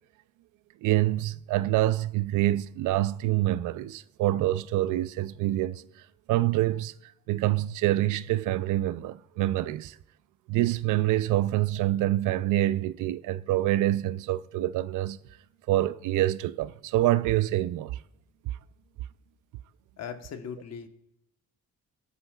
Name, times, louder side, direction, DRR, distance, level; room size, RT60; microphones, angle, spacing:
voice 1, 0.8-5.8 6.3-10.0 10.5-15.2 15.7-18.0, right 15 dB, 85° right, 0.4 m, -26 dB
voice 2, 20.0-20.9, left 7 dB, 60° left, 1.2 m, -38 dB
17.0 x 8.3 x 2.3 m
cardioid pair, 90°, 30 cm